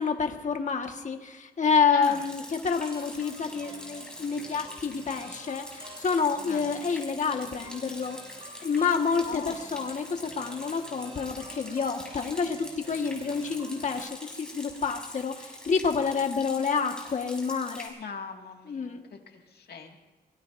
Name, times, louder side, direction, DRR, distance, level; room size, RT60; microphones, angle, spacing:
voice 1, 0.0-8.2 8.6-17.9 18.7-19.0, left 5 dB, 50° left, 5 dB, 1.5 m, -28 dB
voice 2, 1.9-2.2 6.4-6.7 9.3-9.5 17.9-20.0, left 6 dB, 75° left, 3 dB, 2.1 m, -40 dB
Rain, 2.0-17.9, left 1 dB, 5° left, 5.7 m, -45 dB
sound 1, 2.7-14.0, right 1 dB, 35° right, 4.6 m, -49 dB
24.0 x 20.0 x 2.6 m, 1.2 s
cardioid pair, 105°, 16 cm